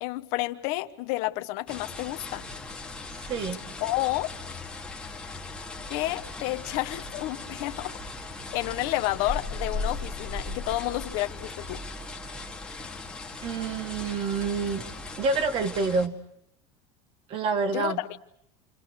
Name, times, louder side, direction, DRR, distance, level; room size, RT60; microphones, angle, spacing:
voice 1, 0.0-2.5 3.8-4.3 5.9-8.0 8.5-11.8 17.7-18.1, left 18 dB, 60° left, 1.3 m, -30 dB
sound 1, 1.7-16.1, left 3 dB, 5° left, 2.1 m, -38 dB
voice 2, 3.2-3.6 13.4-14.8 15.2-16.1 17.3-18.0, right 4 dB, 40° right, 1.8 m, -27 dB
29.0 x 26.5 x 6.5 m
cardioid pair, 155°, 15 cm